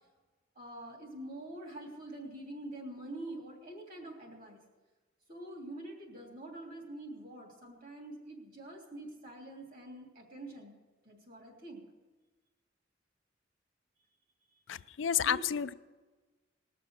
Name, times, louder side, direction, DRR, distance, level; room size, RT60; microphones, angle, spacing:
voice 1, 0.5-4.6 5.3-10.7 11.0-11.8 15.2-15.5, right 1 dB, 45° right, 3.2 m, -45 dB
voice 2, 14.7-15.7, left 9 dB, 75° left, 0.4 m, -31 dB
20.0 x 6.8 x 6.5 m
head